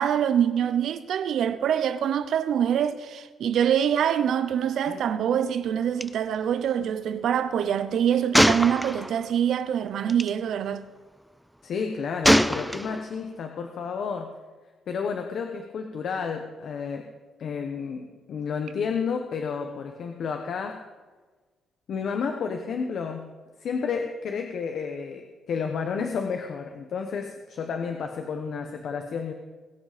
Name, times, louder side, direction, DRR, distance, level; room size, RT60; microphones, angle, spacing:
voice 1, 0.0-10.8, right 9 dB, 65° right, 0.8 m, -25 dB
Gunshot gunfire, 6.0-6.1 6.3-6.5 8.3-9.3 10.1-10.3 12.2-13.2, equal, ahead, 0.4 m, -22 dB
voice 2, 11.6-14.3 14.9-17.1 17.4-20.8 21.9-23.3 23.6-29.3, left 6 dB, 55° left, 1.0 m, -31 dB
20.5 x 8.1 x 5.1 m
cardioid pair, 180°, 0 cm